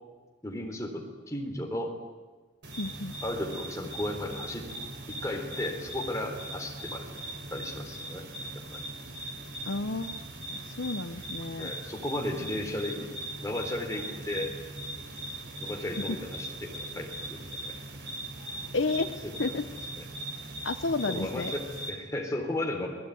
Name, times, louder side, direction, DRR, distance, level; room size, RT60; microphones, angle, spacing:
voice 1, 0.4-1.9 3.2-4.7 5.1-7.1 7.5-8.3 8.7-8.9 11.6-13.1 13.4-14.7 15.6-17.7 19.2-19.6 20.0-20.1 21.1-22.9, left 1 dB, 15° left, 2 dB, 3.8 m, -35 dB
sound 1, 2.6-21.9, right 1 dB, 55° right, 3.8 m, -40 dB
voice 2, 2.8-3.1 9.6-10.2 10.5-11.7 16.0-16.2 18.7-19.7 20.6-21.5, left 3 dB, 60° left, 10 dB, 0.9 m, -31 dB
30.0 x 19.5 x 9.4 m, 1.3 s
head